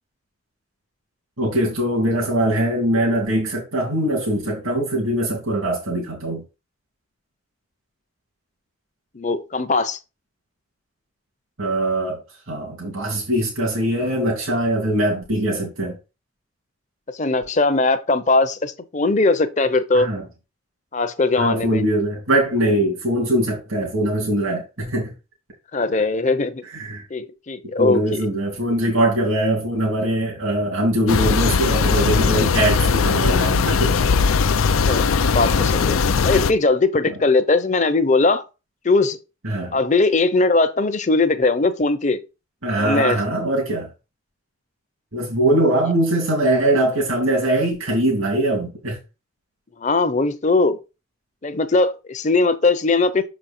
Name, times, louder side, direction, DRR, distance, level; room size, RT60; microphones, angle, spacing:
voice 1, 1.4-6.4 11.6-12.2 12.5-15.9 19.9-20.2 21.4-25.1 26.7-27.0 27.8-34.0 37.0-37.1 39.4-39.8 42.6-43.9 45.1-49.0, right 1 dB, 90° right, 2.7 m, -22 dB
voice 2, 9.1-10.0 17.1-20.1 20.9-21.8 25.7-26.6 27.1-28.3 34.8-36.0 36.2-38.4 38.8-39.2 39.7-42.2 42.8-43.2 49.8-50.8 51.4-53.2, left 3 dB, 35° left, 0.7 m, -20 dB
sound 1, 31.1-36.5, left 5 dB, 90° left, 0.5 m, -19 dB
6.6 x 5.2 x 4.3 m
head